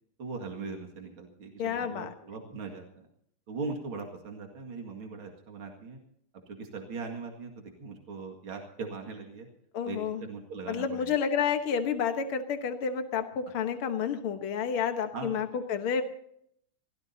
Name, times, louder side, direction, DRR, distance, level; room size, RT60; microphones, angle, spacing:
voice 1, 0.2-3.1 3.5-6.0 6.3-9.5 9.8-11.1 15.1-15.4, right 4 dB, 75° right, 3 dB, 2.9 m, -40 dB
voice 2, 1.6-2.1 9.7-10.2 10.7-16.0, left 7 dB, 80° left, 7 dB, 2.1 m, -30 dB
25.0 x 16.5 x 2.8 m, 0.70 s
omnidirectional pair, 2.3 m